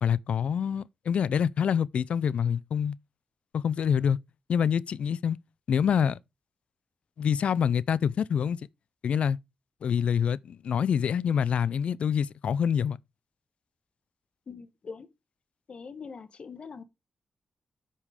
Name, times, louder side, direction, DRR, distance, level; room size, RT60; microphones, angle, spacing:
voice 1, 0.0-3.0 3.5-4.2 4.5-5.4 5.7-6.2 7.2-8.6 9.0-9.4 9.8-13.0, left 7 dB, 80° left, 0.4 m, -26 dB
voice 2, 14.5-15.1 15.7-16.8, left 5 dB, 60° left, 1.3 m, -42 dB
8.3 x 5.4 x 4.9 m
cardioid pair, 60°, 2 cm